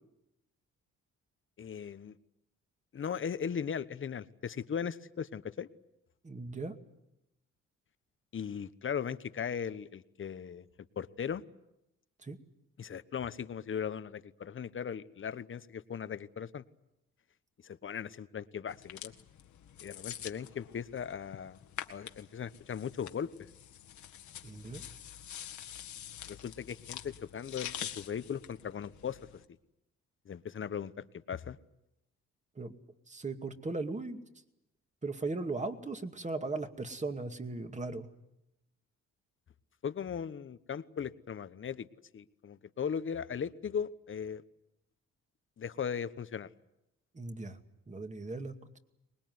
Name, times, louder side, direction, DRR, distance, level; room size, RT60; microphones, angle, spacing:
voice 1, 1.6-2.2 2.9-5.7 8.3-10.7 11.0-11.4 12.8-16.6 17.6-19.1 19.8-21.6 21.9-23.3 26.3-29.2 30.3-31.6 39.8-41.9 42.1-44.4 45.6-46.5, left 7 dB, 40° left, 14 dB, 1.1 m, -38 dB
voice 2, 6.2-6.8 12.2-12.4 24.4-24.8 32.6-32.7 33.1-34.2 35.0-38.1 47.1-47.6 47.9-48.8, right 3 dB, 25° right, 7 dB, 2.3 m, -38 dB
sound 1, 18.7-29.4, left 10 dB, 70° left, 1.9 m, -46 dB
24.0 x 20.5 x 9.5 m, 0.87 s
cardioid pair, 90°, 30 cm